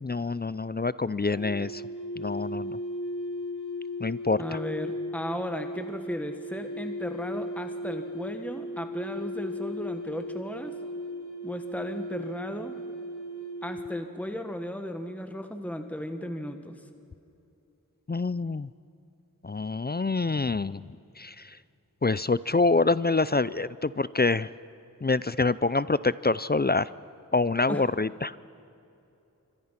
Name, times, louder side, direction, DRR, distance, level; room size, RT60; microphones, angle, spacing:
voice 1, 0.0-1.8 2.2-2.8 4.0-4.4 18.1-18.7 19.4-20.9 21.2-21.5 22.0-24.5 25.0-26.9 27.3-28.4, left 3 dB, 30° left, 18 dB, 0.5 m, -26 dB
sound 1, 1.3-14.1, equal, 60° left, 1.9 m, -36 dB
voice 2, 4.4-10.8 11.4-12.8 13.6-16.8 27.7-27.9, left 1 dB, 5° left, 6 dB, 1.6 m, -35 dB
26.0 x 25.0 x 5.9 m, 2.8 s
wide cardioid pair, 40°, 33 cm